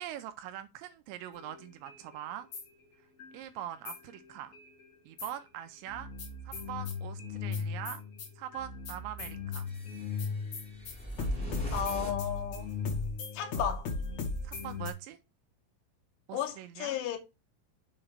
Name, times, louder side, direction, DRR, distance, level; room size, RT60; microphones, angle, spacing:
voice 1, 0.0-2.5 3.0-3.1 3.3-4.5 5.1-6.1 6.5-8.0 8.4-9.7 11.2-11.8 14.4-15.2 16.3-17.0, right 11 dB, 85° right, 2.6 m, -43 dB
sound 1, 1.3-3.4 3.8-5.4 5.9-14.9, left 4 dB, 65° left, 1.7 m, -38 dB
sound 2, 9.7-13.1, equal, 5° left, 0.6 m, -40 dB
voice 2, 11.7-12.7 13.3-13.9 16.3-17.2, left 8 dB, 90° left, 3.5 m, -34 dB
7.1 x 2.9 x 4.9 m
omnidirectional pair, 5.4 m